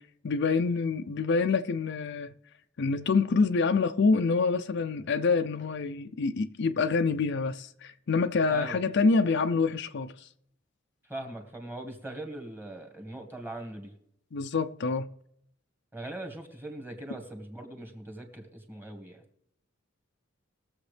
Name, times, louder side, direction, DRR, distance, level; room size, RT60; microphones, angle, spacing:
voice 1, 0.0-2.3 2.8-10.3 14.3-15.1, left 4 dB, 60° left, 0.5 m, -26 dB
voice 2, 11.1-13.9 15.9-19.2, right 2 dB, 10° right, 1.7 m, -40 dB
21.0 x 7.2 x 3.3 m
head